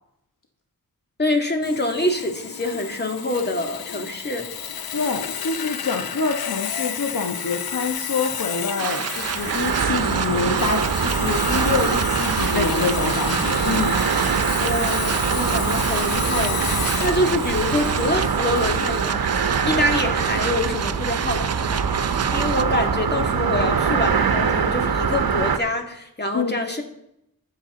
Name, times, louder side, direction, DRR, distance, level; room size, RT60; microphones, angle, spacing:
voice 1, 1.2-4.5 12.5-13.1 14.6-19.2 19.6-26.8, left 1 dB, 30° left, 3 dB, 2.3 m, -26 dB
Sawing, 1.6-19.1, left 8 dB, 80° left, 0.7 m, -32 dB
voice 2, 4.9-14.0 26.3-26.6, left 4 dB, 60° left, 3 dB, 1.3 m, -26 dB
sound 1, 8.8-22.6, right 7 dB, 45° right, 0.5 m, -29 dB
sound 2, 9.2-25.6, right 6 dB, 85° right, 1.0 m, -23 dB
20.5 x 7.3 x 3.9 m, 0.80 s
wide cardioid pair, 75°, 36 cm